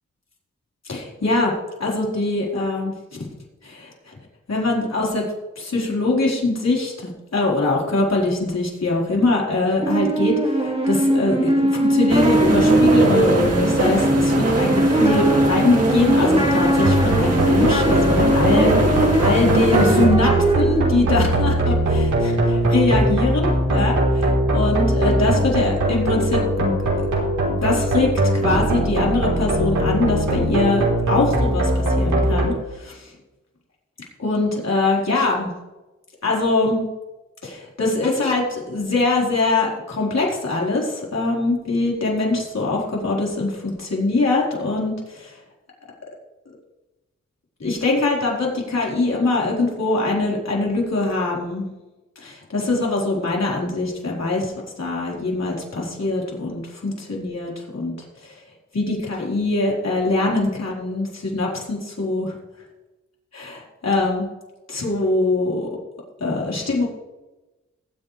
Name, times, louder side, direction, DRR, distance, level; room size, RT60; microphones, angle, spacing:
voice 1, 0.9-1.5 1.8-2.9 3.6-4.1 4.5-5.2 5.6-27.1 27.6-28.1 28.4-33.1 34.2-35.5 36.2-36.9 37.4-45.4 47.6-51.7 52.2-57.9 58.2-58.4 58.7-62.3 63.3-64.3 64.7-65.7 66.2-66.9, left 2 dB, 60° left, -4 dB, 4.4 m, -23 dB
sound 1, 9.8-20.6, right 1 dB, 20° right, 2.1 m, -20 dB
sound 2, 12.1-20.0, right 2 dB, 55° right, 2.6 m, -22 dB
sound 3, 16.8-32.5, right 1 dB, 80° right, 3.8 m, -21 dB
19.5 x 8.2 x 3.3 m, 1.1 s
cardioid pair, 45°, 30 cm